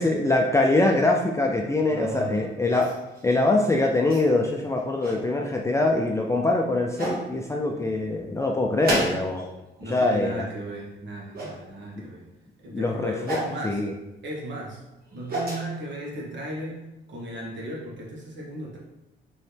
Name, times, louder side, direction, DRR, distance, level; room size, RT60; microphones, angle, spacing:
voice 1, 0.0-2.9 3.2-9.4 9.9-10.3 12.7-13.4 13.6-13.9, left 2 dB, 15° left, 0 dB, 0.4 m, -23 dB
voice 2, 1.9-2.6 9.8-12.3 12.6-13.8 14.2-14.8 15.1-18.8, right 1 dB, 65° right, -4 dB, 1.4 m, -36 dB
sound 1, 2.7-3.2 4.1-4.2 4.8-5.2 6.3-6.4 7.0-7.2 8.8-9.5 9.8-10.2 11.3-11.6 13.2-13.5 14.9-15.6, right 1 dB, 50° right, 1.5 m, -30 dB
4.2 x 3.1 x 3.3 m, 0.96 s
cardioid pair, 90°, 20 cm